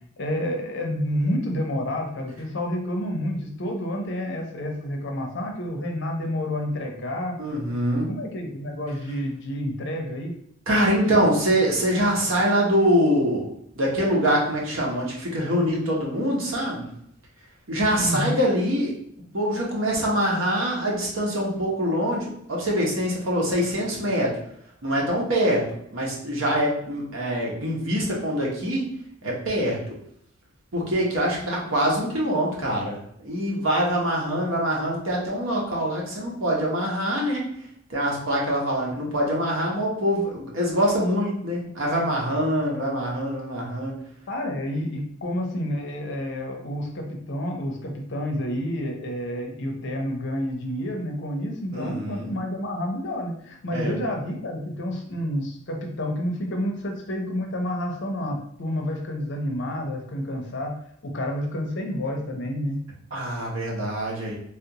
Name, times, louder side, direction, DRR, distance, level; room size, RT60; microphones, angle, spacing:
voice 1, 0.2-7.4 8.0-10.3 18.0-18.4 44.3-60.7 61.0-62.8, left 1 dB, 65° left, 2 dB, 0.7 m, -29 dB
voice 2, 7.4-8.1 10.7-13.5 13.8-16.8 17.7-18.9 19.3-24.3 24.8-25.6 25.9-28.8 29.2-29.9 30.7-33.0 33.2-37.5 37.9-43.9 51.7-52.3 53.7-53.9 63.1-64.4, equal, 90° right, -3 dB, 1.1 m, -24 dB
3.3 x 2.5 x 2.9 m, 0.71 s
head